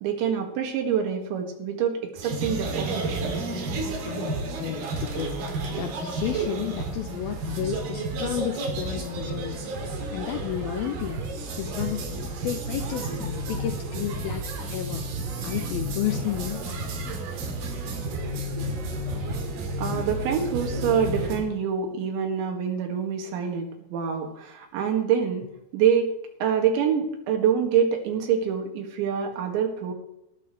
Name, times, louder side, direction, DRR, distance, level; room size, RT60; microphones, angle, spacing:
voice 1, 0.0-3.4 19.8-25.5 25.7-26.1 26.4-29.9, right 7 dB, 85° right, 4 dB, 4.2 m, -26 dB
sound 1, 2.2-21.4, right 2 dB, 65° right, 3.8 m, -31 dB
voice 2, 4.1-5.4 5.7-9.6 10.1-11.2 11.5-12.0 12.4-15.0 15.4-16.9 17.6-17.7 18.0-18.1, left 11 dB, 85° left, 6 dB, 2.2 m, -32 dB
19.5 x 11.5 x 3.2 m, 0.85 s
omnidirectional pair, 5.1 m